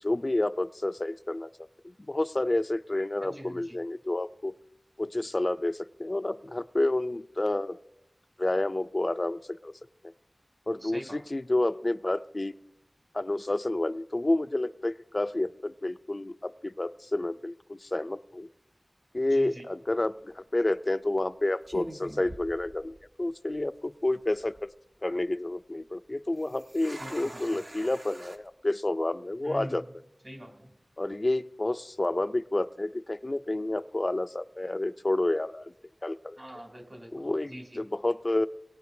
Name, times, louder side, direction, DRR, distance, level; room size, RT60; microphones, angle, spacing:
voice 1, 0.0-1.5 1.8-4.5 5.0-7.8 8.4-9.7 10.7-12.5 13.1-18.5 19.1-24.7 25.0-29.8 31.0-35.7 36.0-36.4 37.1-38.5, left 2 dB, 45° left, 11 dB, 0.3 m, -29 dB
voice 2, 3.2-3.8 10.8-11.2 19.3-19.7 27.0-27.6 29.4-29.8 30.2-30.7 36.4-37.8, equal, 55° right, 2 dB, 2.7 m, -44 dB
sound 1, 20.1-20.4 21.1-21.3 21.7-23.2 23.5-23.6 24.2-24.6 26.4-28.4, right 1 dB, 70° right, 1.3 m, -44 dB
20.5 x 10.0 x 2.6 m, 0.86 s
wide cardioid pair, 50°, 0 cm